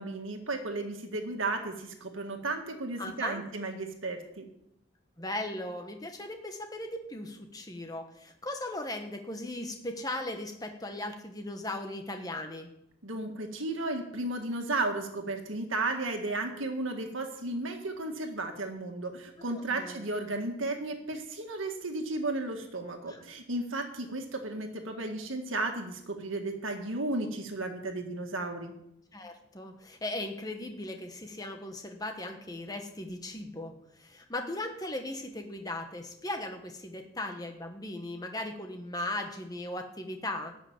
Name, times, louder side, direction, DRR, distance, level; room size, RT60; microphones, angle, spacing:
voice 1, 0.0-4.4 13.0-28.7, right 2 dB, 80° right, 4 dB, 1.8 m, -34 dB
voice 2, 3.0-3.4 5.2-12.7 19.5-20.1 23.0-23.2 29.1-40.5, left 1 dB, 20° left, 4 dB, 1.3 m, -38 dB
13.0 x 6.0 x 8.6 m, 0.79 s
head